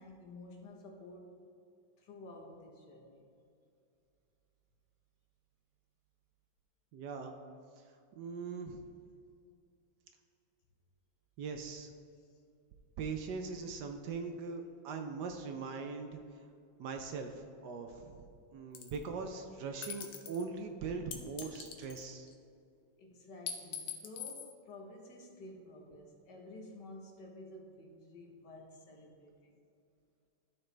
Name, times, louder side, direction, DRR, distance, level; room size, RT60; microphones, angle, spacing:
voice 1, 0.0-1.4 2.0-3.3 12.2-12.4 23.0-29.6, left 1 dB, 65° left, 1 dB, 1.6 m, -52 dB
voice 2, 6.9-7.3 8.1-8.8 11.4-11.9 13.0-16.2 16.8-18.3 18.5-22.3, right 4 dB, 70° right, 5 dB, 1.1 m, -41 dB
sound 1, 18.8-19.0 19.8-20.4 21.1-22.3 23.5-24.5, left 8 dB, 85° left, 1.5 m, -43 dB
13.5 x 4.6 x 3.3 m, 2.5 s
omnidirectional pair, 2.1 m